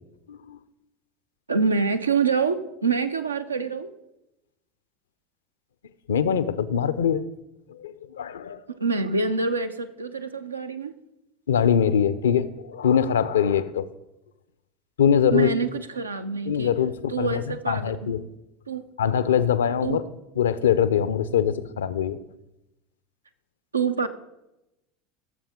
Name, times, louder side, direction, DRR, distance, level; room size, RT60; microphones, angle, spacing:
voice 1, 1.5-3.9 8.8-10.9 15.3-16.7 17.1-18.0 18.7-18.9 19.8-20.0 23.7-24.1, right 4 dB, 85° right, 9 dB, 0.6 m, -26 dB
voice 2, 6.1-7.2 7.7-8.6 11.5-13.8 15.0-15.5 16.5-18.3 19.0-20.0 20.4-22.2, left 8 dB, 75° left, 15 dB, 0.5 m, -23 dB
17.5 x 7.2 x 3.6 m, 0.94 s
figure-of-eight pair, 75°, 0 cm